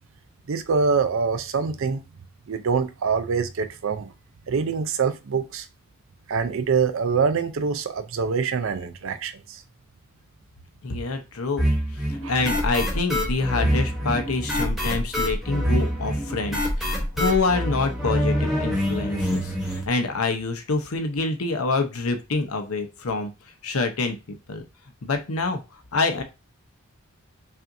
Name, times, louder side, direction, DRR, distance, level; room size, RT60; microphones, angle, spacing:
voice 1, 0.5-2.0 2.5-4.1 4.5-5.7 6.3-9.6 12.2-12.3, right 5 dB, 65° right, 0.4 m, -25 dB
voice 2, 10.8-11.7 12.1-23.3 23.6-24.6 25.0-25.6 25.9-26.2, left 3 dB, 80° left, 0.8 m, -26 dB
sound 1, 11.6-19.8, equal, ahead, 1.1 m, -25 dB
5.7 x 2.5 x 2.6 m
head